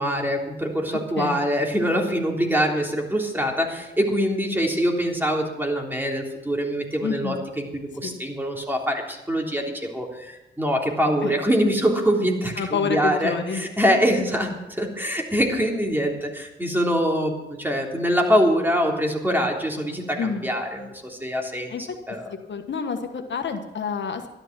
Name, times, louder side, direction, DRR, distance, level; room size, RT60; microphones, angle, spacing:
voice 1, 0.0-21.7 22.1-22.3, equal, 10° right, 0 dB, 3.4 m, -24 dB
voice 2, 0.9-1.5 7.0-7.5 8.0-8.2 11.2-11.3 12.6-13.6 20.2-20.5 21.7-21.8 22.5-24.3, left 5 dB, 70° left, 5 dB, 1.4 m, -28 dB
12.5 x 11.5 x 6.1 m, 1.0 s
cardioid pair, 65°, 20 cm